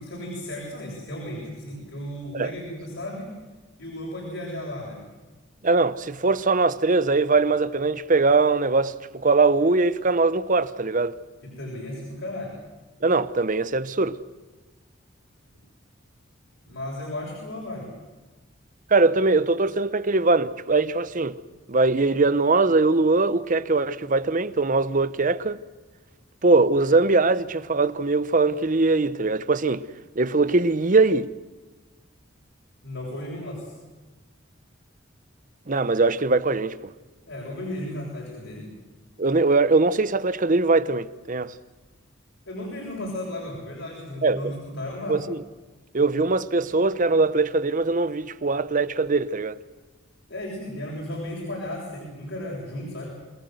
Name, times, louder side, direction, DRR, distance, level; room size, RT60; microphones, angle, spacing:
voice 1, 0.0-3.3 3.8-5.0 11.4-12.6 16.7-17.9 32.8-33.7 37.3-38.7 42.5-45.2 50.3-53.1, left 1 dB, 70° left, 7.4 m, -34 dB
voice 2, 5.6-11.2 13.0-14.2 18.9-21.4 21.7-25.6 26.4-29.9 30.2-31.3 35.7-36.9 39.2-41.5 44.2-44.5 45.1-45.4 45.9-49.6, right 3 dB, 40° right, 0.9 m, -21 dB
28.0 x 19.0 x 8.0 m
head